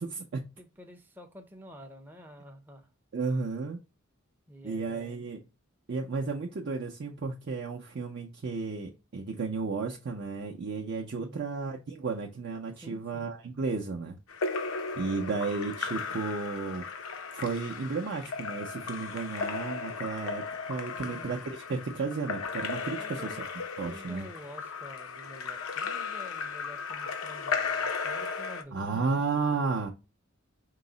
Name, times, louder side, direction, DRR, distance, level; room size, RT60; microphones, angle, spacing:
voice 1, 0.0-0.4 3.1-3.8 4.6-5.4 5.9-14.2 15.0-16.8 17.3-23.4 23.8-24.3 28.7-29.9, right 4 dB, 55° right, 0.5 m, -33 dB
voice 2, 0.6-2.9 4.5-5.2 11.1-11.4 12.8-13.3 20.9-21.3 22.9-23.4 23.8-29.0, equal, 10° right, 0.5 m, -49 dB
Splash splatter / Drip / Trickle dribble, 14.3-28.6, left 5 dB, 85° left, 0.6 m, -36 dB
4.6 x 2.0 x 3.7 m
head